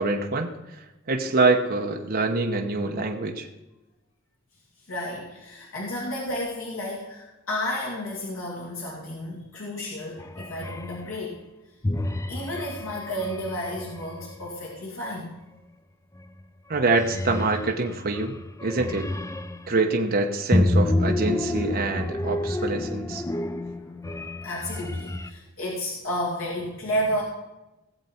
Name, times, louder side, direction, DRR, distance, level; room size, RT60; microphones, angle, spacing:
voice 1, 0.0-3.5 16.7-18.4 18.6-19.1 19.7-23.2, right 3 dB, 45° right, 2 dB, 1.0 m, -25 dB
voice 2, 4.8-11.4 12.3-15.3 23.6-24.0 24.4-27.2, left 1 dB, 70° left, -4 dB, 2.5 m, -32 dB
sound 1, 10.2-11.0 11.8-14.5 16.1-16.4 16.7-19.7 20.5-25.3, left 1 dB, 15° left, 0.5 m, -29 dB
17.5 x 7.6 x 4.4 m, 1.0 s
head